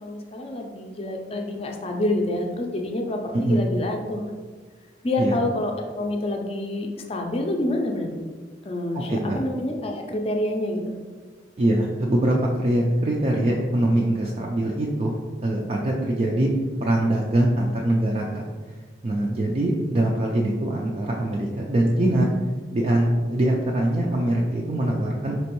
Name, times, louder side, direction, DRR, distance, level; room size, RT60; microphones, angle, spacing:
voice 1, 0.0-4.2 5.0-8.2 8.6-11.0, left 1 dB, 30° left, 2 dB, 0.4 m, -27 dB
voice 2, 11.6-16.5 16.8-18.4 19.0-22.3 22.7-25.4, right 1 dB, 35° right, -2 dB, 0.3 m, -23 dB
4.3 x 3.0 x 3.0 m, 1.4 s
head